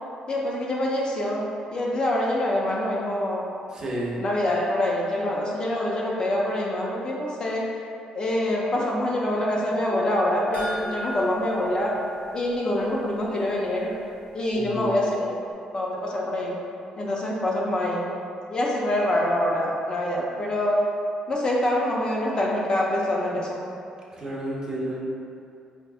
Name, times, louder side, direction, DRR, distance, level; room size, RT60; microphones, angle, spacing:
voice 1, 0.3-3.4 4.2-7.7 8.1-12.0 12.3-13.9 14.3-15.3 15.7-16.6 17.0-18.1 18.5-20.8 21.3-23.6, left 1 dB, 35° left, -3 dB, 0.5 m, -25 dB
voice 2, 3.7-4.2 14.5-14.9 24.1-25.0, right 1 dB, 30° right, -5 dB, 0.8 m, -31 dB
sound 1, 10.5-13.1 13.4-13.5 13.9-14.0, equal, 60° left, 0.9 m, -37 dB
4.8 x 2.5 x 2.4 m, 2.5 s
cardioid pair, 120°, 3 cm